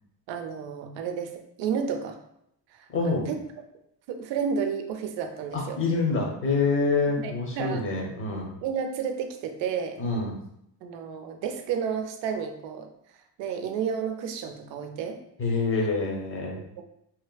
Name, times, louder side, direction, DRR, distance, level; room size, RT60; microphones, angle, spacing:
voice 1, 0.3-1.3 1.6-2.2 2.7-3.4 4.1-5.8 7.2-7.8 8.6-10.0 10.8-12.9 13.4-15.2 16.8-16.9, right 7 dB, 85° right, 5 dB, 0.5 m, -31 dB
voice 2, 2.9-3.3 5.5-8.5 10.0-10.4 15.4-16.6, left 3 dB, 30° left, 0 dB, 0.7 m, -26 dB
2.8 x 2.4 x 2.2 m, 0.76 s
cardioid pair, 115°, 43 cm